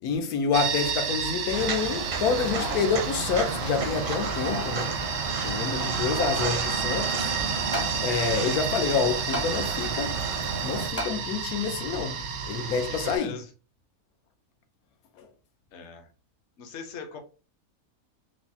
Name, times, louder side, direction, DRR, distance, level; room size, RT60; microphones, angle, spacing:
voice 1, 0.0-4.9 5.4-7.3 8.0-10.2 10.6-12.2 12.5-13.4 15.2-15.3, left 5 dB, 85° left, 1.1 m, -28 dB
sound 1, 0.5-13.2, right 6 dB, 75° right, 1.1 m, -32 dB
Walk footsteps, 1.5-10.9, right 4 dB, 55° right, 0.6 m, -32 dB
sound 2, 2.3-2.9 3.4-3.5 4.2-4.8 5.8-6.5 7.7-8.0 9.3-9.5 11.0-11.2 11.8-11.9, left 1 dB, 20° left, 0.4 m, -34 dB
voice 2, 5.6-6.0 12.5-13.5 15.7-16.1 16.6-17.2, left 5 dB, 55° left, 0.9 m, -41 dB
4.7 x 2.0 x 2.6 m
omnidirectional pair, 1.6 m